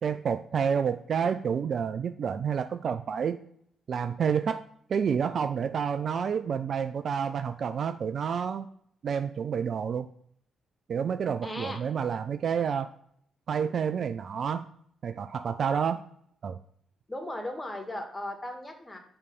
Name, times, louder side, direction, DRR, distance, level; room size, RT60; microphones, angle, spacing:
voice 1, 0.0-3.4 3.9-4.6 4.9-8.7 9.0-10.1 10.9-12.9 13.5-14.7 15.0-16.0 16.4-16.6, right 7 dB, 55° right, 10 dB, 0.3 m, -29 dB
voice 2, 11.4-11.8 17.1-19.0, left 1 dB, 20° left, 4 dB, 1.8 m, -36 dB
6.5 x 3.3 x 5.3 m, 0.68 s
hypercardioid pair, 45°, 0 cm